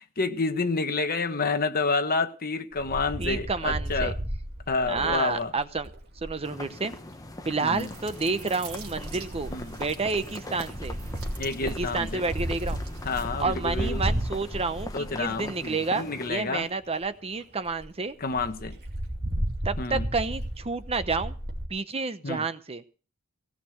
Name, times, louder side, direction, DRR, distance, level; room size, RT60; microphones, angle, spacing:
voice 1, 0.2-4.2 4.7-5.5 7.6-7.9 9.5-9.8 11.4-12.2 13.0-14.0 14.9-16.7 18.2-18.7 19.8-20.1 22.2-22.4, left 3 dB, 40° left, 1.2 m, -29 dB
Wind, 2.8-6.4 7.5-8.0 8.7-15.7 16.3-16.4 16.6-16.7 17.0-17.1 17.4-17.5 17.7-17.9 18.3-21.7, right 1 dB, 50° right, 2.9 m, -34 dB
voice 2, 3.2-4.1 4.9-5.9 6.2-6.9 7.4-11.0 11.6-12.8 13.4-18.1 19.6-21.3 21.7-22.8, right 4 dB, 25° right, 0.8 m, -30 dB
sound 1, 6.4-16.3, left 1 dB, 15° left, 1.0 m, -42 dB
sound 2, 7.8-13.3, right 4 dB, 75° right, 3.6 m, -45 dB
17.5 x 6.6 x 7.9 m
head